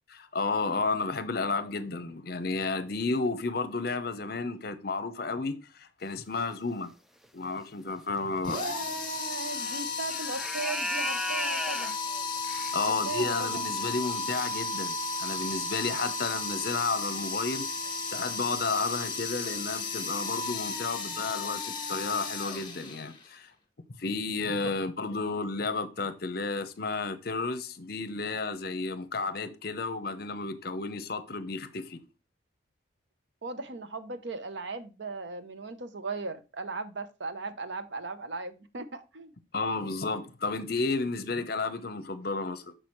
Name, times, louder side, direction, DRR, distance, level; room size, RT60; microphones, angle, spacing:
voice 1, 0.1-6.9 7.3-8.6 12.5-17.7 18.1-23.5 24.0-32.0 39.5-42.7, left 3 dB, 50° left, 0.7 m, -32 dB
sound 1, 7.2-7.5 8.6-8.7 9.5-9.8 10.1-12.9 14.6-14.7 15.3-15.4 16.3-16.6 16.9-17.1 17.4-17.5, equal, ahead, 0.3 m, -35 dB
sound 2, 8.4-23.3, left 3 dB, 25° left, 1.6 m, -34 dB
voice 2, 8.4-12.0 12.8-13.6 24.6-24.7 33.4-39.3, right 3 dB, 65° right, 0.8 m, -37 dB
6.4 x 6.1 x 3.1 m
head